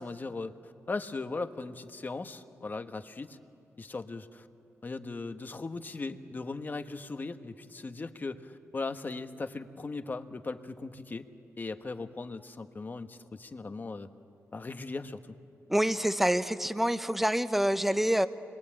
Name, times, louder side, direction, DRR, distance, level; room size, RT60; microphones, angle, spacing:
voice 1, 0.0-3.4 3.8-4.5 4.8-11.3 11.6-14.1 14.5-15.3, left 3 dB, 35° left, 8 dB, 1.3 m, -38 dB
voice 2, 15.7-18.3, equal, 5° right, 11 dB, 0.9 m, -26 dB
29.5 x 23.0 x 8.8 m, 2.6 s
cardioid pair, 85°, 6 cm